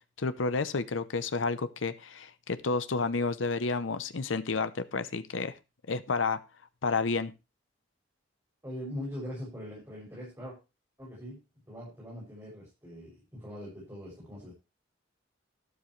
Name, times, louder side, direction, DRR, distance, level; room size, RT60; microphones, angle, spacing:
voice 1, 0.2-5.6 5.9-6.4 6.8-7.3, left 4 dB, 85° left, 12 dB, 0.8 m, -30 dB
voice 2, 8.6-10.6 11.0-11.4 11.7-14.5, equal, 15° right, -6 dB, 6.9 m, -42 dB
12.5 x 11.5 x 3.2 m, 0.27 s
head